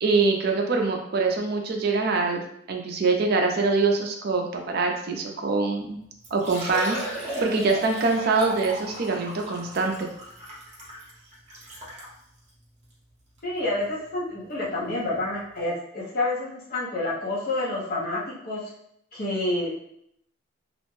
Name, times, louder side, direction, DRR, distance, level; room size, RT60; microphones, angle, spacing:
voice 1, 0.0-2.4 2.7-6.0 6.3-7.0 7.4-9.9, right 3 dB, 50° right, 2 dB, 0.4 m, -24 dB
Liquid, 5.8-5.9 6.2-12.1 12.8-12.9 13.4-13.5 15.1-15.2 15.4-15.5, right 1 dB, 35° right, 0.8 m, -36 dB
voice 2, 13.4-18.6 19.1-19.7, left 2 dB, 45° left, -5 dB, 0.7 m, -28 dB
2.4 x 2.1 x 3.0 m, 0.74 s
head